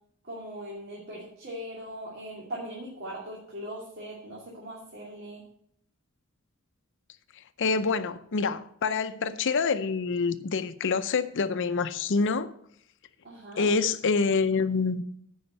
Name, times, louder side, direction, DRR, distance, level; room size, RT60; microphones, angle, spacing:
voice 1, 0.2-5.4 13.2-13.7, equal, 50° right, 2.5 m, -40 dB
voice 2, 7.6-12.5 13.6-15.0, left 4 dB, 60° left, 0.6 m, -26 dB
9.4 x 5.6 x 7.8 m
head